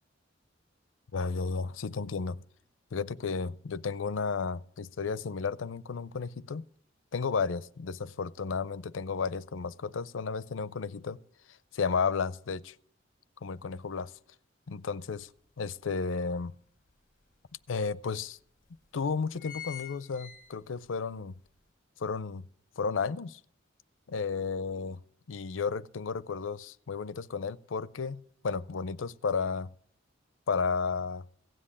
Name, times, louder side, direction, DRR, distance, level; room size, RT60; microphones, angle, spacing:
voice 1, 1.1-2.4 2.9-6.6 7.1-11.2 11.7-12.7 13.4-14.1 14.7-15.3 15.6-16.5 17.7-18.4 18.9-21.4 22.0-22.4 22.8-23.4 24.1-25.0 25.3-29.7 30.5-31.2, left 5 dB, 90° left, 0.5 m, -33 dB
sound 1, 15.2-15.3 15.7-16.9 17.5-17.6 17.9-18.0 18.7-18.9 19.1-21.0 21.4-21.5, left 10 dB, 45° left, 1.2 m, -45 dB
16.5 x 7.6 x 8.6 m
head